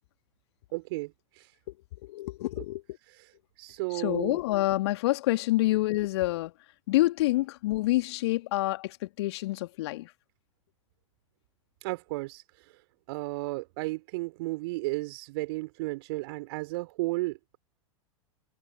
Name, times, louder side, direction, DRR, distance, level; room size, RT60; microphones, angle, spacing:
voice 1, 0.7-1.5 2.6-2.7 3.1-3.3 3.6-4.4 11.8-12.7 13.1-17.6, right 22 dB, 50° right, 5.0 m, -34 dB
voice 2, 2.0-2.8 3.9-6.5 6.9-10.1, left 18 dB, 50° left, 2.6 m, -27 dB
figure-of-eight pair, 95°, 17 cm